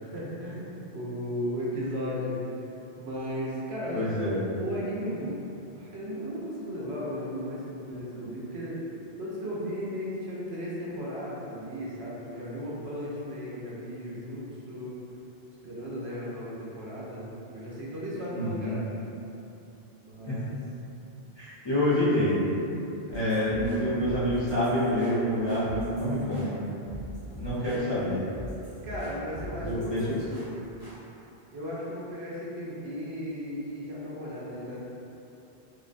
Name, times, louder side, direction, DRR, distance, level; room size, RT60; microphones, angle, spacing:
voice 1, 0.0-2.7 3.0-5.4 5.7-8.9 9.2-14.9 15.6-18.8 20.0-20.6 27.6-27.7 28.8-30.2 31.5-34.8, equal, 70° right, -7 dB, 0.8 m, -35 dB
voice 2, 3.9-4.4 18.3-18.8 20.3-20.4 21.4-22.4 23.1-26.6 27.4-28.2 29.6-30.2, left 1 dB, 30° left, -14 dB, 0.5 m, -27 dB
sound 1, 23.1-31.0, equal, 25° right, 0.6 m, -43 dB
2.7 x 2.1 x 2.4 m, 2.8 s
omnidirectional pair, 1.1 m